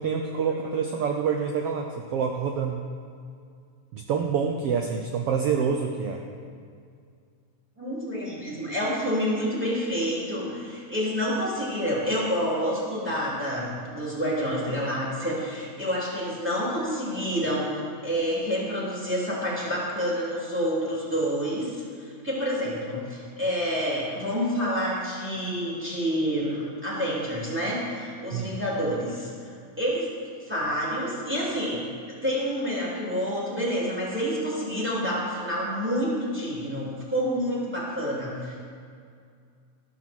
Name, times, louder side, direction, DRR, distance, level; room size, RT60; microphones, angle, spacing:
voice 1, 0.0-2.8 3.9-6.2 28.3-28.5, right 6 dB, 80° right, 3 dB, 1.3 m, -27 dB
voice 2, 7.8-30.1 30.5-38.6, equal, 5° right, -6 dB, 3.2 m, -28 dB
13.0 x 12.5 x 4.5 m, 2.2 s
omnidirectional pair, 3.6 m